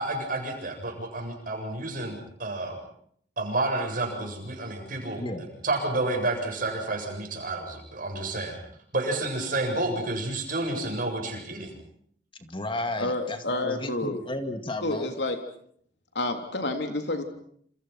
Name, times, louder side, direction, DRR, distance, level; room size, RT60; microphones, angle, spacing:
voice 1, 0.0-2.8 3.4-8.6 8.9-11.7, right 2 dB, 50° right, 3 dB, 7.9 m, -30 dB
voice 2, 12.4-15.1, left 1 dB, 30° left, 7 dB, 2.3 m, -33 dB
voice 3, 13.0-14.2 14.8-15.4 16.2-17.2, left 2 dB, 80° left, 6 dB, 3.6 m, -29 dB
28.5 x 28.0 x 6.0 m, 0.64 s
head